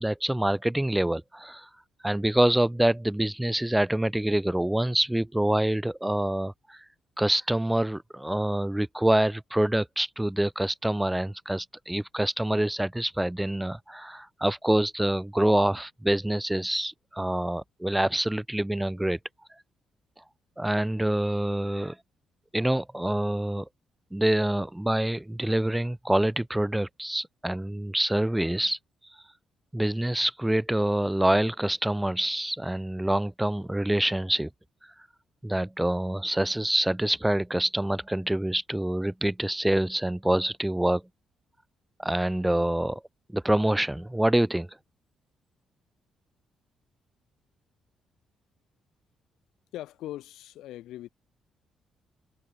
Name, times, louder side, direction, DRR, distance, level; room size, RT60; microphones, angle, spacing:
voice 1, 0.0-1.7 2.0-6.8 7.2-19.2 20.6-22.0 22.5-23.7 24.1-28.8 29.7-34.5 35.4-41.0 42.0-43.0 43.3-44.7, right 1 dB, 5° right, 1.6 m, -26 dB
voice 2, 49.7-51.1, left 14 dB, 85° left, 2.8 m, -40 dB
cardioid pair, 90°, 0 cm